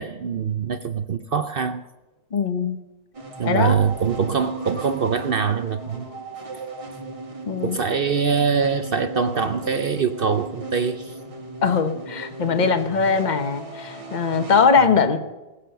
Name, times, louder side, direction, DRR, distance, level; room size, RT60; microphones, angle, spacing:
voice 1, 0.0-1.8 3.4-6.2 7.6-11.2 14.8-14.9, right 6 dB, 70° right, 0.5 m, -23 dB
voice 2, 2.3-2.8 3.4-3.8 7.5-7.8 11.6-15.2, left 5 dB, 30° left, 1.1 m, -21 dB
sound 1, 3.1-14.7, right 2 dB, 20° right, 1.8 m, -36 dB
19.5 x 8.5 x 6.8 m
omnidirectional pair, 1.8 m